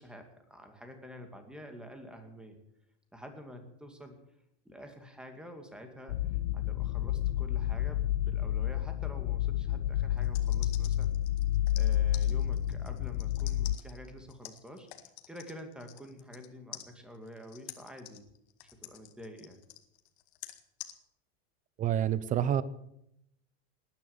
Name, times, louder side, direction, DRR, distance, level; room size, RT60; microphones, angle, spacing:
voice 1, 0.0-2.6 3.1-4.2 4.6-6.2 6.5-11.1 11.8-14.9 15.3-18.2 18.6-19.6, equal, 5° right, 5 dB, 2.4 m, -48 dB
sound 1, 6.1-13.8, left 12 dB, 90° left, 0.8 m, -30 dB
sound 2, 10.2-16.5 16.7-20.9, left 15 dB, 70° left, 2.0 m, -48 dB
voice 2, 21.8-22.6, right 10 dB, 25° right, 17 dB, 0.7 m, -28 dB
19.0 x 10.0 x 7.3 m, 0.79 s
supercardioid pair, 150°, 34 cm